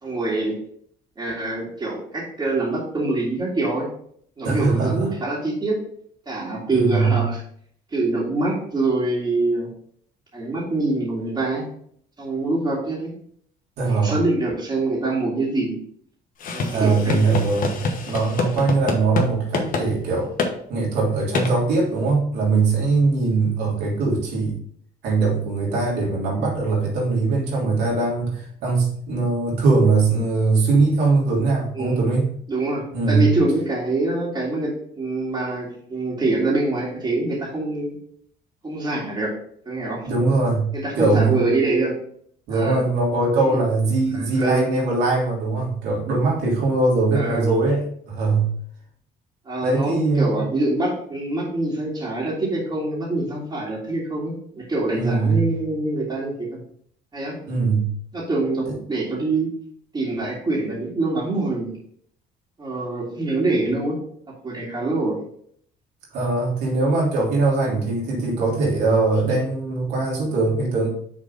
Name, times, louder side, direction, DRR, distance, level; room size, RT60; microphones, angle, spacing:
voice 1, 0.0-0.6 1.2-3.9 4.4-5.8 6.3-7.4 7.9-9.7 10.3-11.6 12.2-13.1 13.8-15.8 16.5-17.4 31.7-32.1 32.5-37.9 38.6-39.3 39.6-40.0 40.7-41.9 42.5-42.8 44.1-44.7 47.1-47.5 49.5-56.6 57.1-57.4 58.1-59.5 59.9-61.8 62.6-64.0 64.4-65.2, right 2 dB, 25° right, -7 dB, 2.2 m, -25 dB
voice 2, 4.4-5.1 6.7-7.2 13.8-14.2 16.7-17.8 18.1-20.3 20.7-24.6 25.0-32.3 32.9-33.3 40.0-41.3 42.5-48.5 49.6-50.4 54.9-55.4 57.5-57.9 58.7-58.8 66.1-70.9, right 3 dB, 85° right, -3 dB, 3.0 m, -21 dB
sound 1, 16.4-19.3 19.5-19.9 20.4-20.5 21.3-21.5, left 4 dB, 55° left, 1.2 m, -25 dB
6.2 x 3.9 x 5.3 m, 0.64 s
cardioid pair, 110°, 17 cm